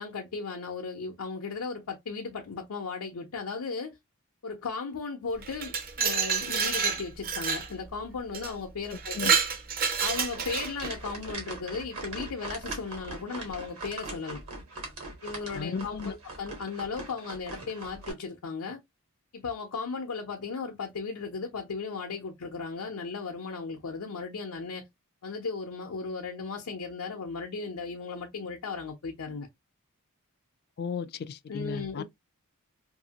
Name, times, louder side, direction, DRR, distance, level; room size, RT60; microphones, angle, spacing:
voice 1, 0.0-4.0 4.4-9.4 10.0-14.4 15.2-18.8 19.3-24.8 25.2-29.5 31.5-32.0, left 4 dB, 80° left, 0.6 m, -36 dB
Glass, 5.4-7.7 8.3-8.5 8.9-10.9, right 6 dB, 40° right, 0.6 m, -28 dB
sound 1, 10.0-18.1, right 2 dB, 70° right, 1.3 m, -41 dB
voice 2, 15.5-16.2 30.8-32.0, left 5 dB, 45° left, 0.3 m, -35 dB
2.8 x 2.6 x 2.8 m
head